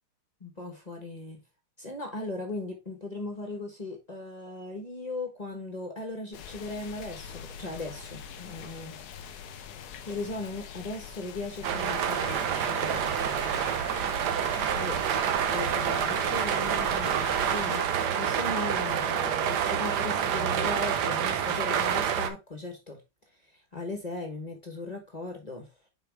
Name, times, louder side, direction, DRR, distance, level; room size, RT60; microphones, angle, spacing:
voice 1, 0.4-1.4 1.8-9.0 9.4-9.5 10.0-13.5 14.8-15.0 15.3-23.0 23.7-25.7, left 2 dB, 25° left, 1.1 m, -38 dB
sound 1, 6.3-17.8, left 8 dB, 70° left, 0.9 m, -43 dB
sound 2, 11.6-22.3, right 8 dB, 60° right, 1.2 m, -28 dB
6.8 x 4.7 x 3.5 m
omnidirectional pair, 2.4 m